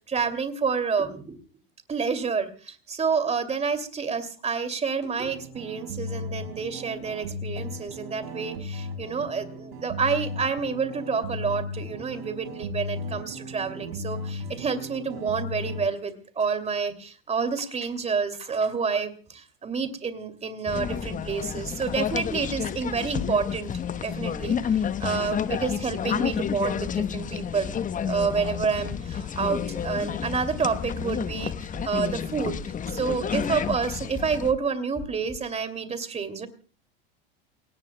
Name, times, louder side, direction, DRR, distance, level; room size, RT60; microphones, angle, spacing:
voice 1, 0.1-1.4 1.9-23.7 24.0-27.7 28.0-32.6 32.9-36.5, right 5 dB, 20° right, 10 dB, 2.6 m, -29 dB
sound 1, 5.2-15.9, left 1 dB, 75° right, 4.4 m, -36 dB
sound 2, 20.7-34.5, left 8 dB, 25° left, 1.0 m, -30 dB
sound 3, 30.4-30.5 30.9-31.4 31.7-32.2 32.5-33.0 33.3-33.8 34.1-34.6 35.0-35.4, equal, 5° right, 5.5 m, -41 dB
28.5 x 18.5 x 2.2 m, 0.38 s
hypercardioid pair, 95°, 30 cm